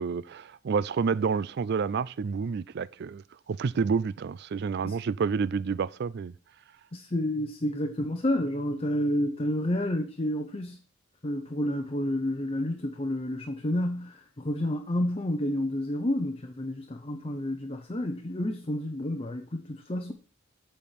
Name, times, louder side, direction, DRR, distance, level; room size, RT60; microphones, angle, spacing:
voice 1, 0.0-6.3, right 5 dB, 55° right, 0.4 m, -29 dB
voice 2, 6.9-10.8 11.2-20.1, left 1 dB, 30° left, 0.8 m, -30 dB
8.4 x 4.4 x 7.3 m
head